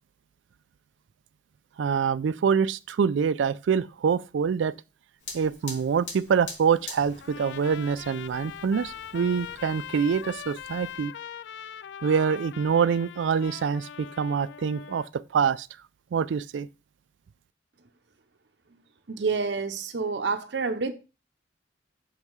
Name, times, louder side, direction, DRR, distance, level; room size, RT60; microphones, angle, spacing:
voice 1, 1.8-4.8 5.3-11.1 12.0-15.7 16.1-16.7, right 6 dB, 80° right, 0.4 m, -25 dB
Fire, 5.2-11.0, left 3 dB, 90° left, 2.5 m, -45 dB
Trumpet, 7.2-15.1, left 9 dB, 70° left, 0.3 m, -41 dB
voice 2, 19.1-20.9, right 4 dB, 65° right, 0.7 m, -28 dB
6.6 x 5.4 x 4.6 m
head